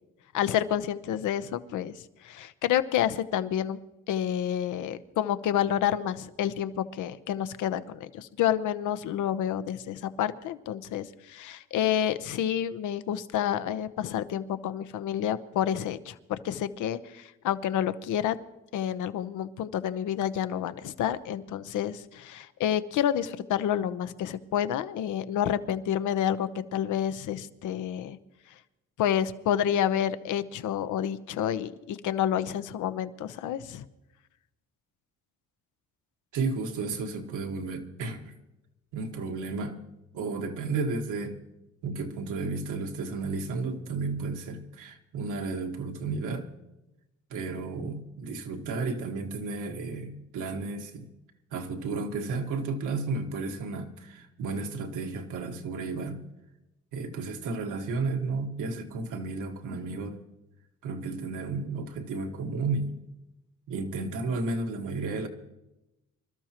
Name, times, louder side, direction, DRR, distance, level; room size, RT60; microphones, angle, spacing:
voice 1, 0.3-1.9 2.2-3.8 4.1-18.4 18.7-28.2 29.0-33.8, left 10 dB, 80° left, 13 dB, 0.8 m, -29 dB
voice 2, 36.3-38.3 38.9-39.8 40.1-41.4 41.8-46.5 47.3-51.1 51.5-56.2 56.9-60.2 60.8-63.0 63.7-65.3, right 3 dB, 85° right, 3 dB, 1.6 m, -33 dB
26.0 x 13.0 x 3.0 m, 0.95 s
cardioid pair, 90°, 30 cm